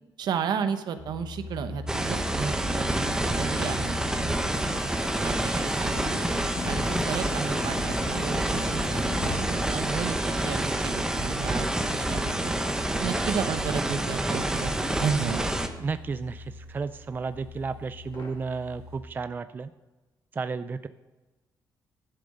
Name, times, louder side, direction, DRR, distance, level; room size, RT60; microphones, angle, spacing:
voice 1, 0.2-4.4 4.6-6.2 6.6-11.7 11.9-12.5 13.0-15.5, right 7 dB, 70° right, 9 dB, 0.9 m, -33 dB
sound 1, 1.0-19.0, left 3 dB, 75° left, 2.7 m, -43 dB
sound 2, 1.9-15.7, right 1 dB, 10° right, 0.9 m, -28 dB
sound 3, 4.3-9.4, left 4 dB, 55° left, 1.2 m, -37 dB
voice 2, 15.8-19.7 20.3-20.9, right 4 dB, 25° right, 12 dB, 0.3 m, -33 dB
11.0 x 7.4 x 5.4 m, 1.2 s
cardioid pair, 125°, 8 cm